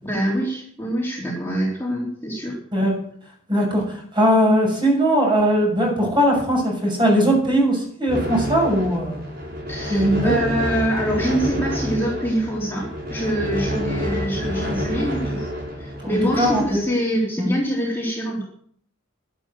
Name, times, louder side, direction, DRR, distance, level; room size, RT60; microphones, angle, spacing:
voice 1, 0.0-2.6 9.7-15.5 15.8-18.4, right 1 dB, 10° left, -4 dB, 3.8 m, -25 dB
voice 2, 3.5-9.2 9.9-10.3 16.0-16.8 17.4-17.5, equal, 25° right, 0 dB, 6.8 m, -19 dB
sound 1, 8.1-16.6, equal, 45° right, 6.5 m, -28 dB
12.0 x 12.0 x 7.8 m, 0.63 s
head